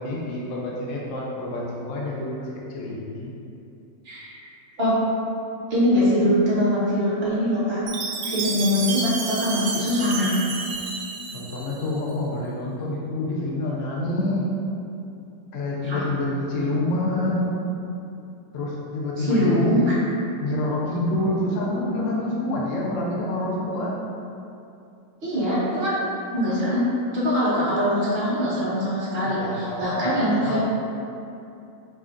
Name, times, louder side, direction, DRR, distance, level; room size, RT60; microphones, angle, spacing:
voice 1, 0.0-3.3 11.3-14.5 15.5-17.5 18.5-19.9 20.4-23.9 29.2-30.6, left 1 dB, 65° left, -3 dB, 0.8 m, -27 dB
voice 2, 5.7-7.8 8.2-10.3 15.8-16.0 19.2-19.9 25.2-25.9 26.3-26.9 27.1-30.6, equal, 40° right, -8 dB, 1.1 m, -22 dB
Chime, 7.9-12.0, right 4 dB, 85° right, 1.3 m, -30 dB
4.9 x 2.4 x 3.7 m, 2.6 s
omnidirectional pair, 1.9 m